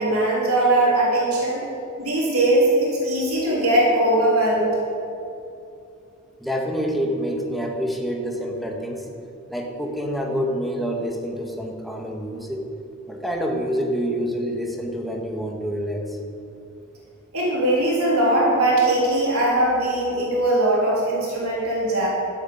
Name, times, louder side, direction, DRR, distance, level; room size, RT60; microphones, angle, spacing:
voice 1, 0.0-1.6 2.0-4.7 17.3-22.1, right 1 dB, 85° right, -4 dB, 3.7 m, -20 dB
voice 2, 6.4-9.1 9.5-12.7 13.1-16.2, equal, ahead, 0 dB, 1.9 m, -27 dB
13.0 x 9.6 x 8.7 m, 2.7 s
head